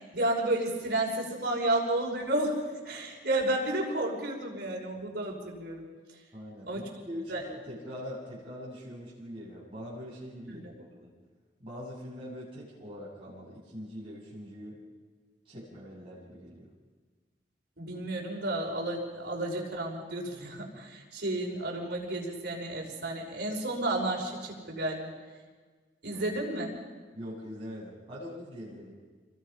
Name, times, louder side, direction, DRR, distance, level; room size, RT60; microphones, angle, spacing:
voice 1, 0.0-2.5 2.9-5.8 6.7-6.8 7.3-7.4 10.5-10.6 17.8-25.1 26.0-26.7, right 1 dB, 60° right, -1 dB, 5.6 m, -31 dB
voice 2, 6.3-11.1 11.6-14.8 15.4-16.7 26.1-26.4 27.1-28.9, equal, 30° right, -9 dB, 7.7 m, -43 dB
28.5 x 21.5 x 5.7 m, 1.4 s
head